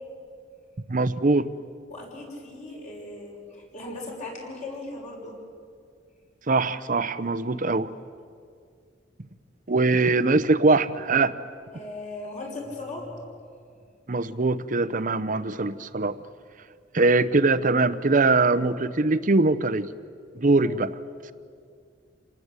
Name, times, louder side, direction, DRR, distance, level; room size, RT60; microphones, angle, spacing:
voice 1, 0.9-1.5 6.5-7.9 9.7-11.3 14.1-16.2 16.9-19.9 20.3-21.0, right 3 dB, 45° right, 14 dB, 0.8 m, -22 dB
voice 2, 1.9-5.4 11.7-13.2 20.5-20.9, left 2 dB, 40° left, -1 dB, 6.3 m, -38 dB
28.0 x 19.5 x 8.3 m, 2.2 s
head